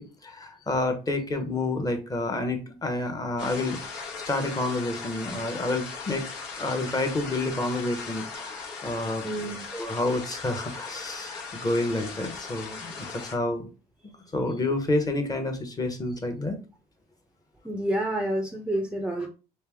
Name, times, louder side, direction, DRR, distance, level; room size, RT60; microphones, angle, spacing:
voice 1, 0.0-4.0 4.2-6.2 6.6-9.2 9.7-13.7 14.3-16.6, left 2 dB, 20° left, 6 dB, 0.9 m, -29 dB
sound 1, 3.4-13.3, left 5 dB, 90° left, 1.4 m, -38 dB
voice 2, 9.2-9.6 17.6-19.3, right 1 dB, 5° right, 2 dB, 0.5 m, -28 dB
3.2 x 3.2 x 3.4 m, 0.32 s
cardioid pair, 110°, 17 cm